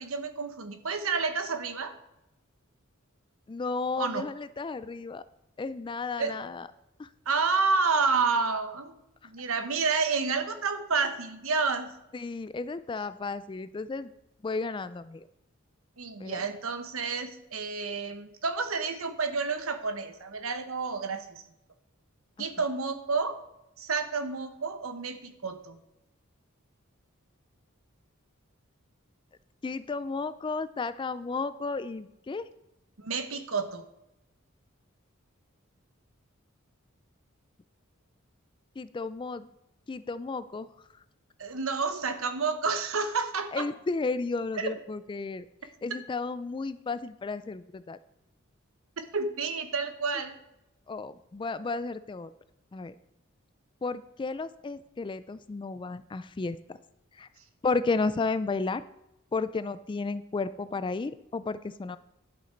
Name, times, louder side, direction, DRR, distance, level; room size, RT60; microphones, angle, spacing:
voice 1, 0.0-1.9 4.0-4.3 6.2-6.3 7.3-8.9 9.2-11.9 16.0-21.4 22.4-23.4 23.8-25.8 33.0-33.8 41.4-43.7 44.6-44.7 49.1-50.4, right 4 dB, 80° right, 8 dB, 1.0 m, -30 dB
voice 2, 3.5-5.2 5.6-6.7 7.0-7.1 12.1-14.1 14.4-15.2 16.2-16.4 22.4-22.5 29.6-32.5 38.8-39.5 39.9-40.7 43.5-45.5 45.8-48.0 50.9-52.3 52.7-52.9 53.8-56.8 57.2-57.3 57.6-58.8 59.3-62.0, left 3 dB, 25° left, 15 dB, 0.3 m, -33 dB
11.5 x 6.5 x 4.4 m, 0.87 s
head